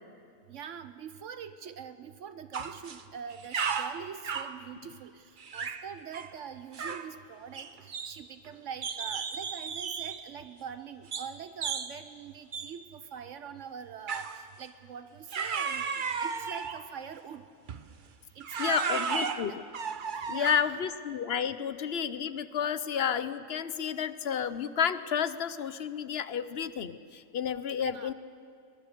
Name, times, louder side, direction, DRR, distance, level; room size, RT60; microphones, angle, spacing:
voice 1, 0.5-17.5 18.4-19.0 19.3-19.6 20.3-20.6 27.8-28.1, right 7 dB, 70° right, 11 dB, 1.0 m, -44 dB
sound 1, 2.5-3.0 3.3-4.6 5.4-5.9 6.1-6.3 6.7-7.1 7.5-8.5 8.8-10.2 11.1-11.3 11.6-11.9 12.5-12.7 14.1-14.4 15.3-16.9 17.7-17.9 18.4-20.8, right 6 dB, 45° right, 0.9 m, -34 dB
voice 2, 18.6-19.5 20.3-28.1, left 8 dB, 55° left, 14 dB, 0.9 m, -31 dB
22.5 x 21.0 x 6.8 m, 2.4 s
omnidirectional pair, 1.4 m